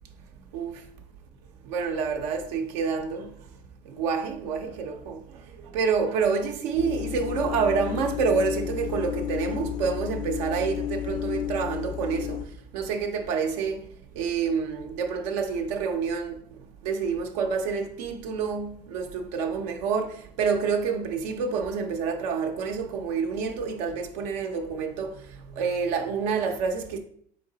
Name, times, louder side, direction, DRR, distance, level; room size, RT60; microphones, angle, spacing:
voice 1, 0.5-0.8 1.6-3.3 3.9-12.4 12.7-13.9 14.1-16.4 16.8-27.0, right 5 dB, 80° right, 0.6 m, -28 dB
sound 1, 6.8-12.5, left 10 dB, 40° left, 0.4 m, -32 dB
3.9 x 3.5 x 3.8 m
supercardioid pair, 90°, 20 cm